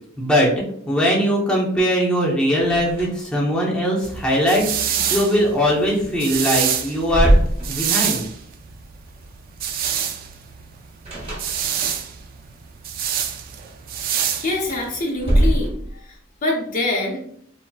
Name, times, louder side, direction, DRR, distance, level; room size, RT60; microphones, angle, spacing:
voice 1, 0.2-0.5 0.9-7.3 7.7-8.2, equal, 5° left, -4 dB, 0.6 m, -20 dB
sound 1, 2.6-3.4 3.7-3.8 6.0-6.1 6.5-8.3 11.0-12.0 14.5-16.2, right 1 dB, 30° right, 1.1 m, -22 dB
sound 2, 4.0-15.0, right 9 dB, 50° right, 0.3 m, -26 dB
voice 2, 14.4-16.0 16.4-17.2, left 2 dB, 45° left, -1 dB, 0.5 m, -24 dB
3.9 x 2.0 x 2.2 m, 0.66 s
head